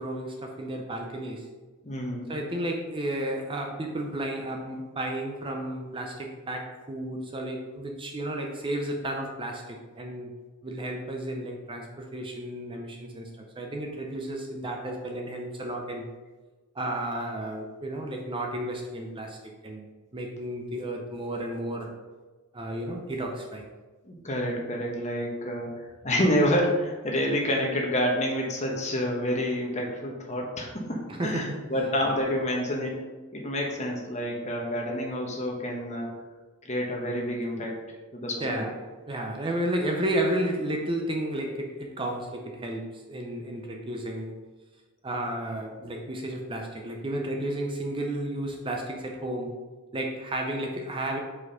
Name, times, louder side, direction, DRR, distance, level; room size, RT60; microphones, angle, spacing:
voice 1, 0.0-1.5 2.3-10.3 10.6-13.3 13.6-16.1 16.7-19.4 19.6-22.0 22.5-23.7 31.1-31.6 38.4-38.7 39.1-44.3 45.0-49.6 49.9-51.2, right 1 dB, 25° right, 2 dB, 0.5 m, -32 dB
voice 2, 1.8-2.3 24.0-33.0 33.3-36.1 36.6-37.7 38.1-38.6, equal, 30° left, 0 dB, 1.1 m, -28 dB
4.8 x 4.3 x 5.0 m, 1.3 s
head